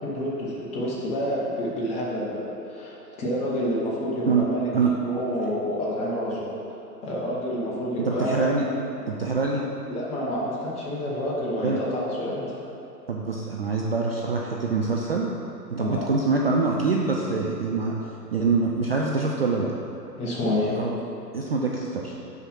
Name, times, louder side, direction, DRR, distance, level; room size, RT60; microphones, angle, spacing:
voice 1, 0.0-4.6 5.0-6.5 7.0-8.7 9.9-12.5 15.8-16.1 20.2-20.7, equal, 15° left, -6 dB, 0.9 m, -28 dB
voice 2, 8.0-8.7 9.1-9.6 11.6-11.8 13.1-15.3 15.7-17.9 18.3-19.7 20.7-20.9 21.3-22.2, right 4 dB, 40° right, -2 dB, 0.4 m, -24 dB
5.7 x 4.8 x 5.5 m, 2.9 s
figure-of-eight pair, 125°, 50 cm